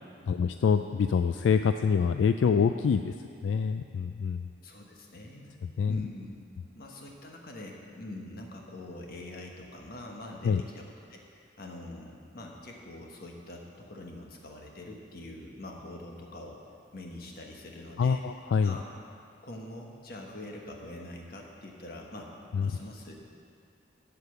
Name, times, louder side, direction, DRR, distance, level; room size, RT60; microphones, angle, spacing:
voice 1, 0.3-3.1 3.4-4.5 5.8-6.0 10.4-10.6 18.0-18.8 22.5-22.7, left 6 dB, 80° left, 8 dB, 0.3 m, -26 dB
voice 2, 4.6-6.4 6.7-16.6 16.9-18.2 18.6-18.9 19.4-23.1, left 1 dB, 55° left, 0 dB, 1.4 m, -44 dB
8.6 x 8.1 x 6.9 m, 2.4 s
head